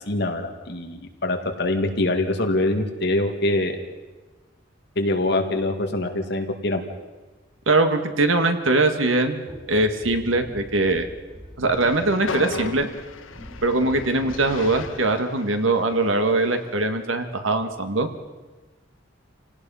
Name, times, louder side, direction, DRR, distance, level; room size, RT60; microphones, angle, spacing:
voice 1, 0.1-3.7 5.0-6.8, left 2 dB, 60° left, 4 dB, 2.2 m, -24 dB
voice 2, 7.7-9.4 9.7-11.1 11.6-12.9 13.6-18.1, right 2 dB, 80° right, 7 dB, 1.8 m, -21 dB
sound 1, 9.4-15.0 15.9-16.0, equal, 55° right, 5.8 m, -41 dB
Train, 11.6-16.9, left 4 dB, 90° left, 1.3 m, -37 dB
28.5 x 18.0 x 5.6 m, 1.2 s
head